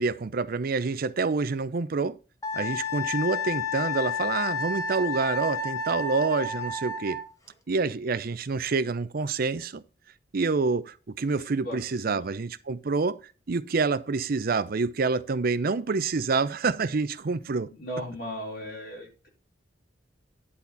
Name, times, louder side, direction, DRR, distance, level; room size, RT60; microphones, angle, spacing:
voice 1, 0.0-2.2 2.5-7.2 7.7-9.8 10.3-13.2 13.5-17.7, right 4 dB, 50° right, 0.5 m, -27 dB
Wind instrument woodwind instrument, 2.4-7.3, left 4 dB, 20° left, 1.4 m, -31 dB
voice 2, 17.7-19.3, equal, 55° left, 4.4 m, -37 dB
10.5 x 4.3 x 5.6 m
head